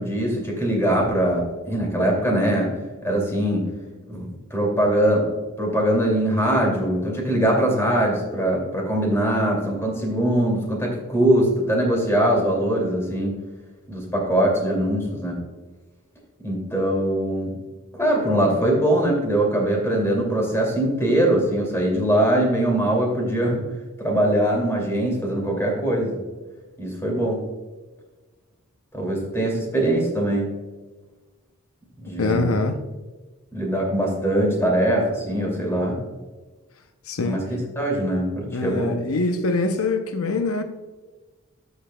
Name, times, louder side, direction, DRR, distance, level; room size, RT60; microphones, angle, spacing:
voice 1, 0.0-2.7 3.0-3.6 4.1-4.3 4.5-5.3 5.6-13.3 13.9-15.4 16.4-17.5 17.9-23.6 24.0-26.2 26.8-27.4 28.9-30.5 32.0-32.6 33.5-36.0 37.2-39.0, right 1 dB, 15° left, -1 dB, 2.4 m, -22 dB
voice 2, 32.2-32.8 37.1-37.4 38.5-40.6, left 3 dB, 85° left, 7 dB, 0.6 m, -24 dB
13.0 x 6.7 x 2.2 m, 1.2 s
head